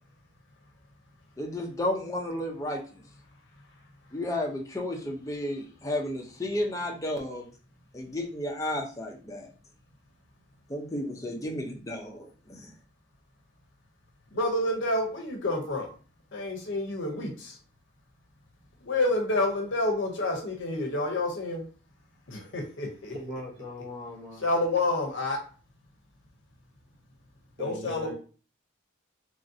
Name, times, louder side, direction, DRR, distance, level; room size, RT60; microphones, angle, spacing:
voice 1, 1.4-3.0 4.1-7.5 7.9-9.5 10.7-12.7, left 1 dB, 15° left, 0 dB, 0.5 m, -32 dB
voice 2, 14.3-15.9 16.3-17.6 18.8-21.6 22.3-23.1 24.4-25.4 27.6-28.1, left 2 dB, 70° left, 1 dB, 0.6 m, -28 dB
voice 3, 23.1-24.5 27.6-28.1, left 1 dB, 40° right, -5 dB, 0.7 m, -39 dB
3.1 x 2.6 x 2.5 m, 0.39 s
head